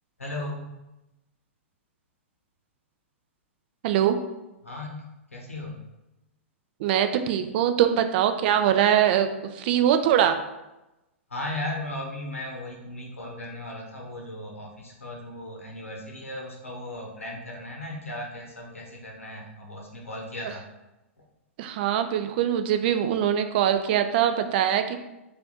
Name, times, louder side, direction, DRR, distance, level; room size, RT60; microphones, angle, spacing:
voice 1, 0.2-0.7 4.6-5.8 11.3-20.6 21.2-21.3, left 1 dB, 85° left, 0 dB, 0.9 m, -36 dB
voice 2, 3.8-4.2 6.8-10.4 21.6-25.0, right 10 dB, 50° right, 8 dB, 0.4 m, -22 dB
3.2 x 2.5 x 3.9 m, 0.96 s
figure-of-eight pair, 110°, 7 cm